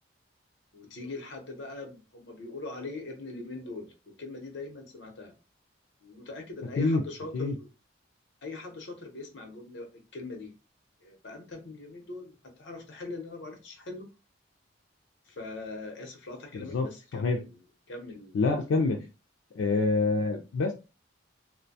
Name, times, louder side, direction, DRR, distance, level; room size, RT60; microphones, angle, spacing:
voice 1, 0.7-5.3 6.0-7.7 8.4-10.5 11.0-14.1 15.3-17.6 17.9-18.4, left 3 dB, 65° left, 4 dB, 0.8 m, -42 dB
voice 2, 16.5-16.9 17.1-17.4 18.3-19.0 19.5-20.7, left 3 dB, 85° left, 2 dB, 0.4 m, -26 dB
2.5 x 2.1 x 2.6 m, 0.30 s
head